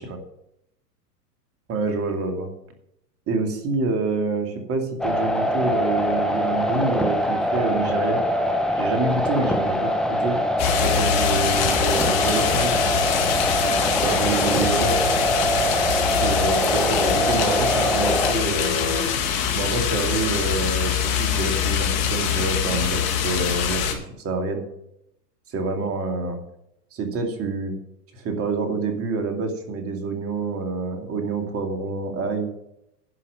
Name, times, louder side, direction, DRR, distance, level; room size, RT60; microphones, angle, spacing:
voice 1, 1.7-2.5 3.3-8.2 8.8-10.3 10.7-12.8 14.0-15.0 16.1-18.8 19.5-23.8 24.2-24.6 25.5-26.4 26.9-27.7 28.1-32.5, right 3 dB, 30° right, 4 dB, 2.5 m, -27 dB
sound 1, 5.0-18.3, equal, ahead, 1.0 m, -23 dB
sound 2, 10.6-23.9, left 8 dB, 40° left, 2.3 m, -24 dB
sound 3, 13.1-19.0, left 4 dB, 65° left, 4.2 m, -34 dB
11.0 x 5.6 x 8.8 m, 0.80 s
hypercardioid pair, 125°, 48 cm